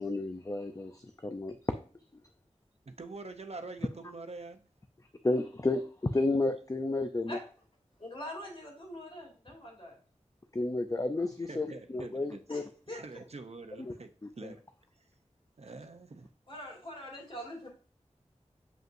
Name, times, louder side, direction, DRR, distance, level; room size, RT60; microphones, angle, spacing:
voice 1, 0.0-1.6 5.2-7.4 10.5-12.6 13.8-13.9 14.2-14.5, left 2 dB, 30° left, 7 dB, 0.5 m, -32 dB
voice 2, 2.9-4.7 11.5-12.4 12.9-14.1 14.4-14.6 15.6-16.3, right 3 dB, 60° right, 7 dB, 0.6 m, -45 dB
voice 3, 8.0-10.0 12.5-13.0 16.5-17.7, equal, 45° left, -1 dB, 2.8 m, -43 dB
7.6 x 5.3 x 2.6 m, 0.41 s
wide cardioid pair, 65°, 12 cm